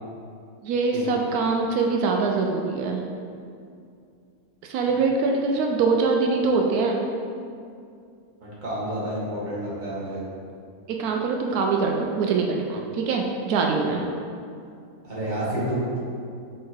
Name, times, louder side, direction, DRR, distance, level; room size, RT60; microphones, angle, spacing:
voice 1, 0.6-3.0 4.6-7.0 10.9-14.0, right 4 dB, 85° right, 1 dB, 1.1 m, -23 dB
voice 2, 8.4-10.2 15.0-15.8, right 1 dB, 30° right, -8 dB, 1.7 m, -29 dB
4.6 x 4.6 x 4.5 m, 2.4 s
omnidirectional pair, 1.6 m